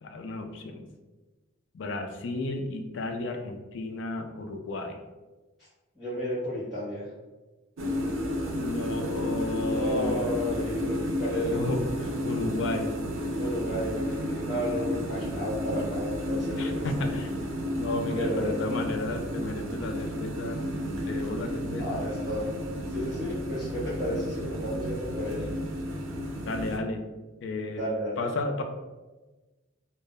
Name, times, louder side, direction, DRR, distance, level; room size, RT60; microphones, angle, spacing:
voice 1, 0.0-0.9 1.7-5.0 8.5-10.6 11.5-12.9 16.6-17.3 17.8-20.6 21.1-22.0 26.4-27.0 27.4-27.9 28.2-28.6, left 2 dB, 60° left, 5 dB, 0.3 m, -33 dB
voice 2, 6.0-7.1 9.7-11.6 13.4-16.9 18.1-18.7 21.8-22.5 22.9-25.5 27.7-28.3, equal, ahead, -14 dB, 0.6 m, -32 dB
sound 1, 7.8-26.8, equal, 70° right, 0.4 m, -32 dB
2.1 x 2.0 x 3.4 m, 1.2 s
head